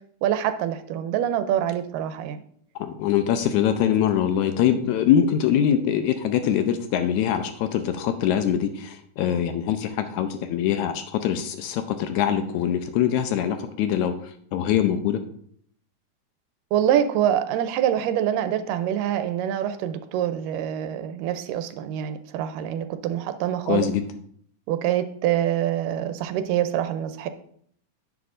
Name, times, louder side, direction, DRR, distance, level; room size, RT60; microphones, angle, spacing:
voice 1, 0.2-2.4 16.7-23.9 24.7-27.3, right 10 dB, 85° right, 10 dB, 2.3 m, -25 dB
voice 2, 2.8-14.1 14.5-15.2 23.7-24.0, left 9 dB, 80° left, 8 dB, 1.9 m, -23 dB
10.5 x 7.9 x 2.5 m, 0.63 s
omnidirectional pair, 3.7 m